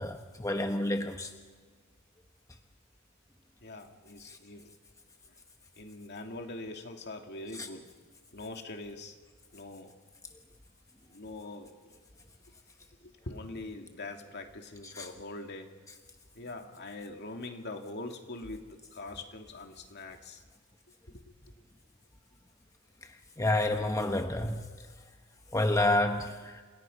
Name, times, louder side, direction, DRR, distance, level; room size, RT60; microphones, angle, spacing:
voice 1, 0.0-1.3 4.2-4.4 7.5-7.7 14.8-15.1 23.4-24.9 25.5-26.6, left 1 dB, 15° left, 1.1 m, -29 dB
voice 2, 3.6-4.7 5.8-7.9 8.3-9.1 9.5-9.9 11.1-11.8 13.0-15.7 16.4-20.4 21.1-21.3, left 2 dB, 55° left, 2.6 m, -43 dB
30.0 x 28.0 x 5.5 m
head